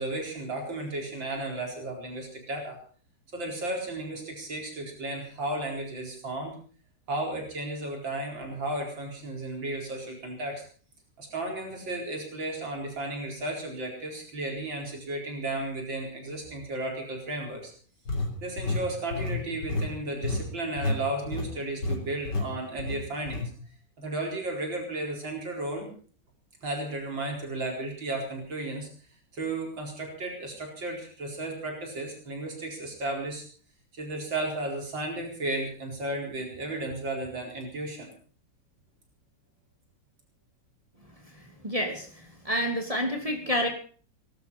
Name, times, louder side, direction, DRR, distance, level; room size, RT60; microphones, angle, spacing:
voice 1, 0.0-2.8 3.3-6.6 7.1-10.6 11.2-17.7 18.4-23.5 24.0-25.9 26.6-28.9 29.3-33.4 33.9-38.1, right 2 dB, 85° right, 1 dB, 5.1 m, -34 dB
sound 1, 18.1-21.0 21.3-21.5 21.8-22.0 22.3-22.5 22.8-23.5, left 2 dB, 65° left, 4.0 m, -30 dB
voice 2, 41.6-42.1 42.4-43.7, equal, 20° right, 2 dB, 3.0 m, -28 dB
20.5 x 12.0 x 5.5 m, 0.43 s
omnidirectional pair, 2.0 m